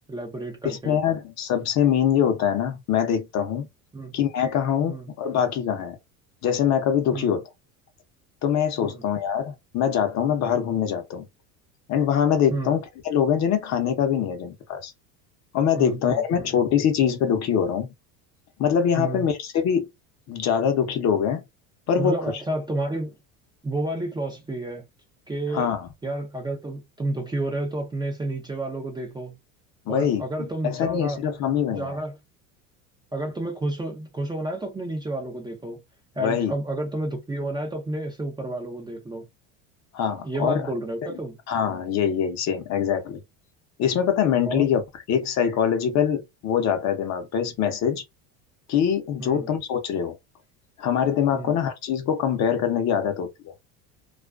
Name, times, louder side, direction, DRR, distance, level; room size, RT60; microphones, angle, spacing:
voice 1, 0.1-1.0 3.9-4.2 4.9-5.1 7.1-7.4 8.8-9.0 12.5-12.7 15.7-16.5 19.0-19.3 22.0-23.1 23.6-24.8 25.3-25.7 26.0-29.4 29.9-31.2 31.7-32.1 33.1-35.8 36.1-39.2 40.2-41.4 44.4-44.7 49.2-49.5 51.3-51.6, right 1 dB, 10° right, 0.5 m, -30 dB
voice 2, 0.6-3.7 4.1-6.0 6.4-7.5 8.4-11.3 11.9-14.9 15.5-17.9 18.6-19.9 20.3-21.4 21.9-22.2 25.5-25.9 29.9-32.0 36.2-36.5 39.9-40.7 41.0-41.1 41.5-43.2 43.8-44.8 45.1-48.0 48.7-50.2 50.8-53.5, left 8 dB, 45° left, 0.7 m, -23 dB
2.4 x 2.3 x 2.3 m
supercardioid pair, 110°, 39 cm